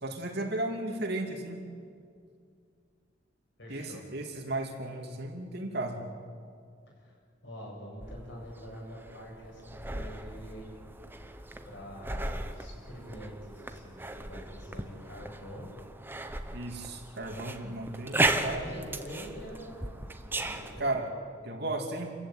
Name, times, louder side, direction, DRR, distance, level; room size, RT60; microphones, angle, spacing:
voice 1, 0.0-1.6 3.7-6.0 16.5-18.9 20.8-21.1 21.4-22.1, right 2 dB, 60° right, 3 dB, 2.7 m, -35 dB
voice 2, 3.6-4.0 7.0-10.7 11.6-15.7 18.3-20.9, equal, 70° left, -2 dB, 8.0 m, -45 dB
sound 1, 8.0-20.8, right 2 dB, 10° right, 1.1 m, -36 dB
28.5 x 15.0 x 9.2 m, 2.3 s
head